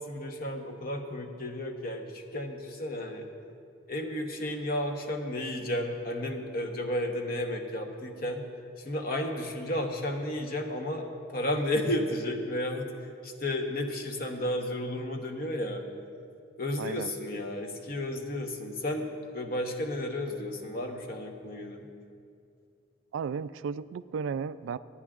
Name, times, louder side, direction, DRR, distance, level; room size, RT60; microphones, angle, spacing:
voice 1, 0.0-3.3 3.9-8.4 8.8-12.9 13.2-15.8 16.6-21.9, left 1 dB, 45° left, 3 dB, 1.0 m, -33 dB
voice 2, 16.8-17.1 23.1-24.8, right 6 dB, 75° right, 15 dB, 0.3 m, -34 dB
26.5 x 10.0 x 2.5 m, 2.4 s
head